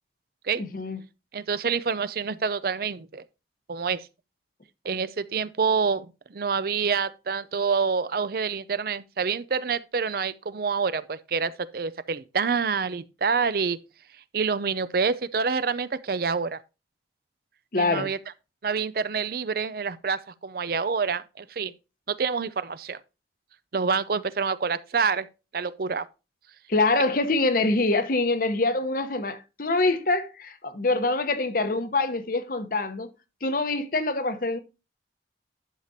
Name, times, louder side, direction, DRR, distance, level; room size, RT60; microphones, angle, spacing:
voice 1, 0.6-1.0 17.7-18.1 26.7-33.1 33.4-34.6, left 2 dB, 50° left, 1.0 m, -25 dB
voice 2, 1.3-3.2 3.7-4.1 4.8-13.8 14.3-16.6 17.8-18.2 18.6-21.7 22.1-23.0 23.7-25.3 25.5-26.1, right 5 dB, 55° right, 0.5 m, -27 dB
11.0 x 6.7 x 2.7 m
head